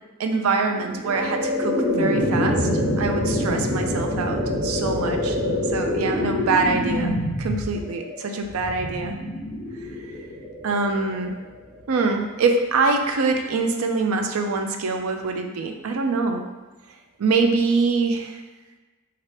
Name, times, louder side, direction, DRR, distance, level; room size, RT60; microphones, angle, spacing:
voice 1, 0.2-2.7 3.0-5.4 5.7-9.1 10.6-11.3 11.9-16.4 17.2-18.3, right 4 dB, 85° right, 4 dB, 0.4 m, -24 dB
sound 1, 0.7-11.8, left 1 dB, 10° right, 0.9 m, -26 dB
4.2 x 2.5 x 3.2 m, 1.2 s
head